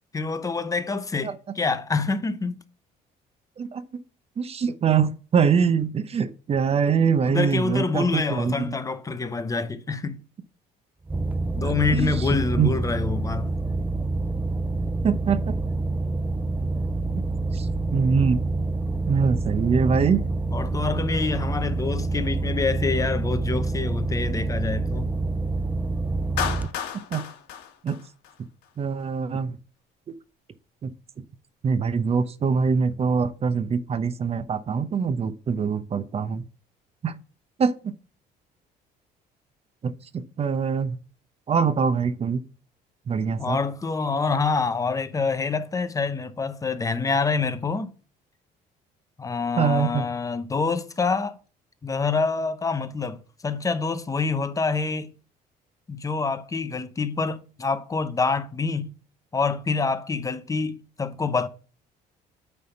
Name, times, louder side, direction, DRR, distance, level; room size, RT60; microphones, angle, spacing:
voice 1, 0.1-2.6 7.2-10.2 11.5-13.5 20.5-25.1 43.4-47.9 49.2-51.4 51.8-55.1 55.9-58.9 59.3-61.5, left 4 dB, 20° left, 0.8 m, -26 dB
voice 2, 4.4-8.5 11.6-12.7 15.0-15.6 17.5-17.7 17.9-18.4 19.0-20.2 27.1-27.3 27.8-28.0 28.8-29.6 30.8-30.9 31.6-36.4 37.0-37.1 37.6-37.9 39.8-41.0 41.5-42.4 43.1-43.6 49.6-50.1, right 6 dB, 35° right, 0.8 m, -23 dB
sound 1, 11.1-26.7, right 2 dB, 10° right, 0.4 m, -27 dB
Clapping, 26.4-28.7, left 9 dB, 80° left, 1.2 m, -32 dB
9.4 x 3.5 x 5.7 m
cardioid pair, 110°, 17 cm